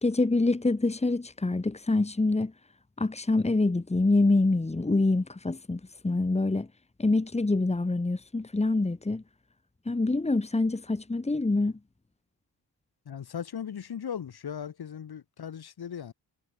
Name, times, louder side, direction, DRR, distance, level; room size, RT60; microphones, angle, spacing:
voice 1, 0.0-2.5 3.0-6.7 7.0-9.2 9.9-11.7, left 2 dB, 15° left, 2.7 m, -26 dB
voice 2, 13.1-16.1, left 8 dB, 55° left, 4.5 m, -38 dB
wide cardioid pair, 160°, 45 cm